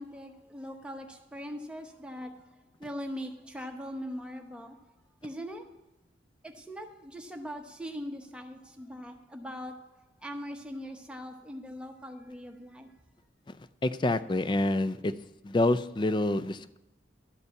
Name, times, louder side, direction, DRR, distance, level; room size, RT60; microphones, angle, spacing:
voice 1, 0.0-2.5 2.8-4.9 5.2-5.7 6.4-12.9, equal, 5° right, 4 dB, 0.9 m, -41 dB
voice 2, 13.8-15.1 15.4-16.8, left 2 dB, 25° left, 14 dB, 0.4 m, -27 dB
12.0 x 5.4 x 8.3 m, 0.95 s
head